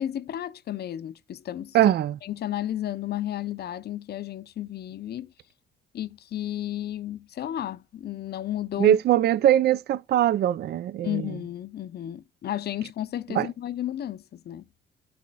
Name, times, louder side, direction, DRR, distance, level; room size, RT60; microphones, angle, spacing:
voice 1, 0.0-1.8 2.2-5.3 5.9-9.0 11.0-14.7, left 12 dB, 55° left, 0.5 m, -33 dB
voice 2, 1.7-2.2 8.8-11.3 13.3-13.5, right 12 dB, 55° right, 0.4 m, -21 dB
11.5 x 4.2 x 2.2 m
cardioid pair, 90°, 20 cm